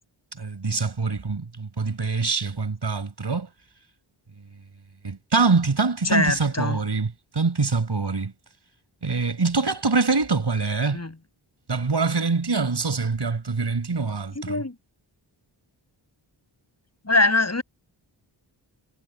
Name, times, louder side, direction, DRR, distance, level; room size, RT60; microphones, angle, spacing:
voice 1, 0.4-3.5 5.0-8.3 9.0-11.0 11.7-14.6, right 4 dB, 60° right, 5.1 m, -24 dB
voice 2, 6.0-6.8 10.9-11.1 14.3-14.7 17.0-17.6, left 2 dB, 35° left, 7.9 m, -22 dB
wide cardioid pair, 75°, 47 cm